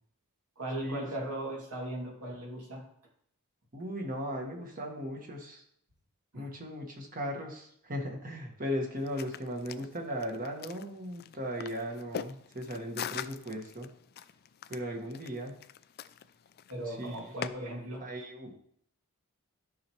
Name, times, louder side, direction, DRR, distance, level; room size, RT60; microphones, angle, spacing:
voice 1, 0.6-2.9 6.3-6.5 16.7-18.1, right 1 dB, 75° right, -2 dB, 2.5 m, -38 dB
voice 2, 3.7-5.6 6.3-13.9 14.7-15.5 16.9-17.3 18.0-18.5, equal, 40° right, 1 dB, 1.6 m, -37 dB
sound 1, 9.0-17.5, left 8 dB, 45° left, 0.3 m, -43 dB
12.5 x 5.7 x 3.1 m, 0.66 s
head